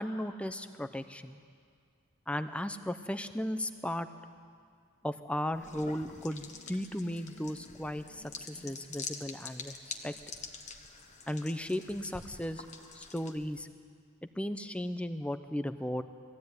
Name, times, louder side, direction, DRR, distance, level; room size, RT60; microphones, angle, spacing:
voice 1, 0.0-1.4 2.3-4.1 5.0-10.1 11.3-12.6 12.9-13.7 14.4-16.0, left 1 dB, 5° left, 10 dB, 0.7 m, -36 dB
sound 1, 5.5-13.6, left 4 dB, 35° left, 1.4 m, -46 dB
sound 2, 5.6-8.9, left 1 dB, 65° left, 2.4 m, -57 dB
20.5 x 15.0 x 9.6 m, 2.1 s
head